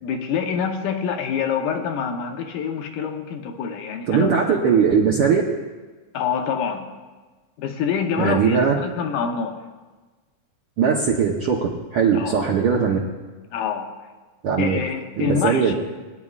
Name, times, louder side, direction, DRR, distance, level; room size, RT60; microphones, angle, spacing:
voice 1, 0.0-4.6 6.1-6.9 7.6-9.6 12.1-12.4 13.5-13.9 14.6-15.7, left 7 dB, 80° left, 4 dB, 2.4 m, -26 dB
voice 2, 4.1-5.4 8.2-8.7 10.8-13.0 14.4-14.8 15.2-15.7, right 6 dB, 75° right, -1 dB, 1.3 m, -19 dB
22.5 x 9.6 x 2.4 m, 1.3 s
omnidirectional pair, 3.8 m